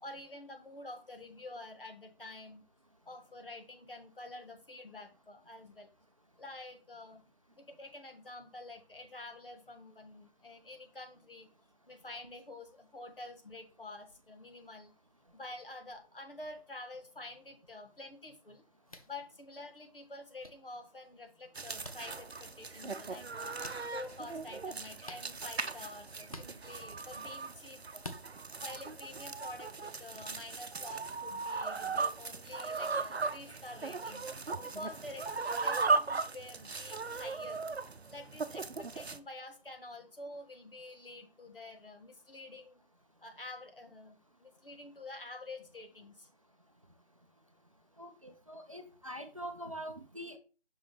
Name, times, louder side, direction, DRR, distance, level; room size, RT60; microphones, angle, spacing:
voice 1, 0.0-2.6 3.0-5.9 6.4-7.2 7.6-11.5 11.9-14.9 15.3-18.6 19.1-23.6 23.9-28.0 28.6-37.7 38.1-42.8 43.2-46.3, left 2 dB, 60° left, 5 dB, 1.5 m, -48 dB
sound 1, 18.9-19.1 20.4-20.5 21.8-22.0 23.6-23.8 25.0-25.3 26.3-26.5 28.0-28.2, left 1 dB, 35° left, 0.6 m, -46 dB
sound 2, 21.5-39.2, right 4 dB, 80° right, 0.7 m, -37 dB
voice 2, 48.0-50.4, equal, 35° right, 5 dB, 0.6 m, -44 dB
5.6 x 5.4 x 3.4 m, 0.34 s
figure-of-eight pair, 160°, 31 cm